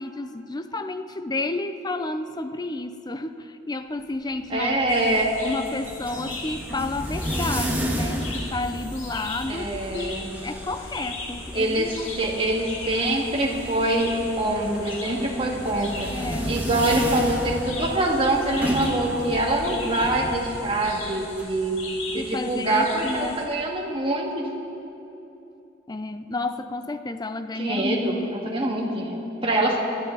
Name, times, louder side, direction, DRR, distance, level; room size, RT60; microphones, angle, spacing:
voice 1, 0.0-4.8 5.4-12.1 16.1-16.6 22.2-23.4 25.9-28.5, left 2 dB, 20° left, 9 dB, 0.5 m, -31 dB
sound 1, 4.4-21.5, equal, 10° right, 1.5 m, -33 dB
voice 2, 4.5-5.3 9.5-10.3 11.5-16.1 16.5-21.8 22.1-24.5 27.6-29.8, right 1 dB, 30° right, -2 dB, 2.1 m, -24 dB
sound 2, 4.9-23.4, left 3 dB, 90° left, 2.3 m, -39 dB
25.5 x 11.0 x 4.0 m, 2.9 s
head